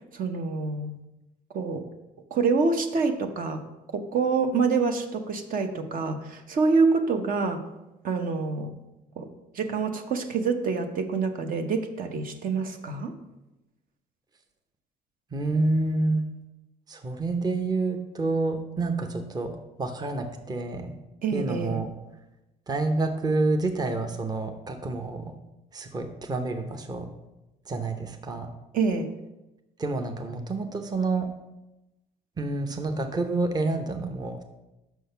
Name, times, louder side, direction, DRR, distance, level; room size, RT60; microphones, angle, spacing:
voice 1, 0.1-1.0 1.5-1.8 2.3-7.6 8.0-8.7 9.2-13.1 21.2-21.8 28.7-29.1, right 4 dB, 55° right, 6 dB, 0.9 m, -26 dB
voice 2, 15.3-16.2 16.9-20.9 21.3-21.9 22.7-25.3 25.7-27.1 27.7-28.5 29.8-31.3 32.4-34.4, right 2 dB, 25° right, 5 dB, 0.7 m, -28 dB
6.3 x 5.7 x 5.6 m, 0.98 s
cardioid pair, 110°, 17 cm